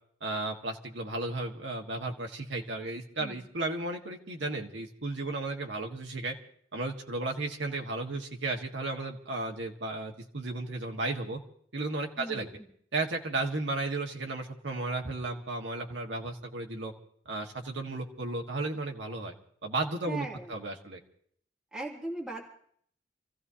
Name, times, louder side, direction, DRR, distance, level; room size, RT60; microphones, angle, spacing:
voice 1, 0.2-6.3 6.7-11.4 11.7-12.5 12.9-16.9 17.2-19.3 19.6-21.0, right 2 dB, 70° right, 2 dB, 1.7 m, -34 dB
voice 2, 12.2-12.6 20.1-20.5 21.7-22.4, right 2 dB, 5° right, -4 dB, 2.6 m, -39 dB
28.5 x 15.0 x 2.8 m, 0.64 s
head